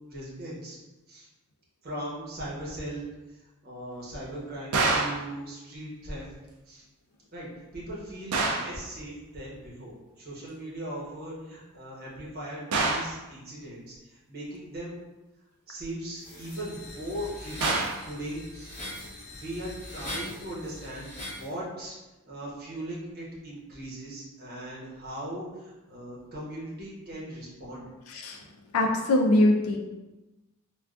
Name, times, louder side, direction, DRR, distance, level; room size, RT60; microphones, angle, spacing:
voice 1, 0.1-0.8 1.1-1.3 1.8-3.1 3.3-6.3 6.7-6.8 7.3-7.5 7.7-14.9 15.7-17.8 18.0-18.7 19.3-21.9 22.2-27.8, right 1 dB, 45° right, -5 dB, 0.9 m, -39 dB
sound 1, 4.7-5.3 8.3-8.8 12.7-13.2 17.6-18.1, right 3 dB, 85° right, 0.4 m, -26 dB
sound 2, 16.2-21.5, left 1 dB, 30° left, 0.8 m, -40 dB
voice 2, 28.7-29.8, left 1 dB, 80° left, 2 dB, 0.4 m, -22 dB
3.4 x 2.3 x 2.4 m, 1.1 s
head